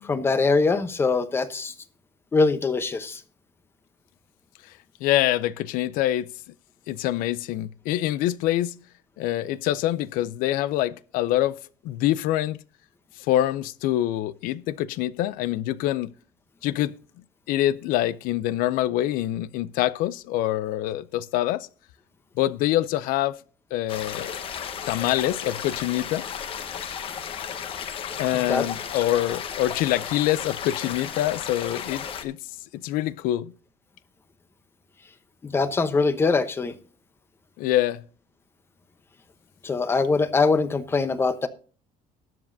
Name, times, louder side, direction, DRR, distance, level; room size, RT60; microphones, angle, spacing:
voice 1, 0.0-1.7 2.3-3.2 28.3-28.6 35.4-36.7 39.6-41.5, left 4 dB, 15° left, 0.8 m, -23 dB
voice 2, 5.0-6.3 6.9-8.8 9.2-11.6 11.8-12.6 13.2-16.1 16.6-17.0 17.5-21.7 22.4-23.4 23.7-24.4 24.9-26.3 28.2-32.4 32.8-33.5 37.6-38.0, left 14 dB, 75° left, 0.5 m, -25 dB
sound 1, 23.9-32.2, left 8 dB, 40° left, 1.1 m, -34 dB
20.0 x 7.2 x 2.7 m
cardioid pair, 170°, 15 cm